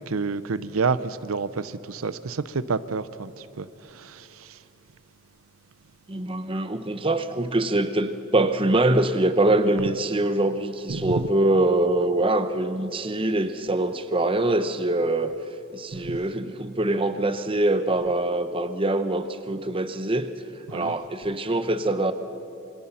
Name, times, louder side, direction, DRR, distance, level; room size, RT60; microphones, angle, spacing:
voice 1, 0.0-3.3 3.6-3.7 4.0-4.3 10.9-11.2 16.1-16.2 20.7-20.9, right 4 dB, 80° right, 0.7 m, -28 dB
voice 2, 6.1-15.3 15.7-20.3 20.7-22.1, right 2 dB, 25° right, 0.8 m, -24 dB
27.0 x 23.5 x 5.8 m
head